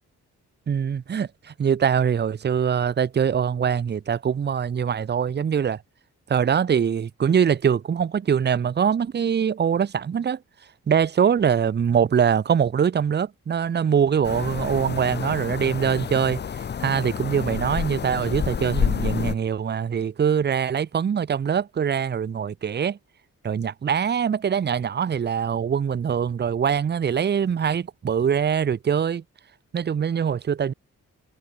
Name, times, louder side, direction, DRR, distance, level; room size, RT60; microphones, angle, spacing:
voice 1, 0.7-5.8 6.3-10.4 10.9-23.0 23.4-29.2 29.7-30.7, right 7 dB, 30° right, 0.5 m, -23 dB
sound 1, 14.2-19.3, left 7 dB, 30° left, 0.5 m, -29 dB
supercardioid pair, 45°, 35 cm